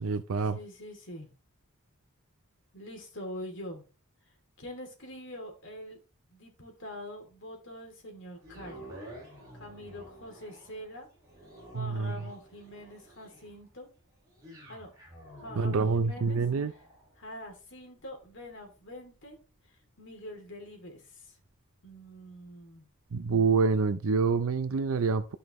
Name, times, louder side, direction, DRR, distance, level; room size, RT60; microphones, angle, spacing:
voice 1, 0.0-0.6 11.8-12.1 15.6-16.7 23.1-25.3, right 4 dB, 70° right, 0.5 m, -27 dB
voice 2, 0.5-1.3 2.7-3.9 4.6-6.0 6.3-9.0 9.5-11.1 11.7-13.9 14.7-14.9 15.4-16.4 17.2-19.4 20.0-21.4 21.8-22.9, left 1 dB, 55° left, 2.7 m, -44 dB
sound 1, 8.4-22.6 23.1-23.2, right 1 dB, 15° right, 4.8 m, -52 dB
12.5 x 5.6 x 3.1 m
head